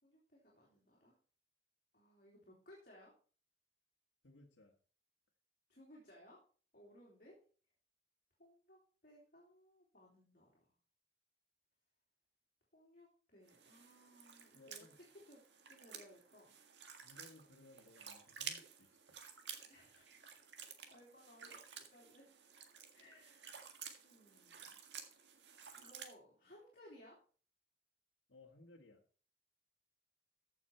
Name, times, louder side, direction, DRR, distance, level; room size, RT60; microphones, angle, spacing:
voice 1, 0.0-1.2 1.9-3.1 5.7-6.4 6.7-7.4 8.4-10.7 12.7-15.4 15.7-16.5 19.7-20.4 20.9-22.3 22.9-24.8 25.8-27.2, equal, 50° left, -3 dB, 3.2 m, -62 dB
voice 2, 4.2-4.7 14.5-15.0 17.0-19.0 28.3-29.0, left 2 dB, 85° left, -1 dB, 1.7 m, -61 dB
sound 1, 13.5-26.1, right 7 dB, 70° right, 1.8 m, -53 dB
14.5 x 6.4 x 4.5 m, 0.40 s
head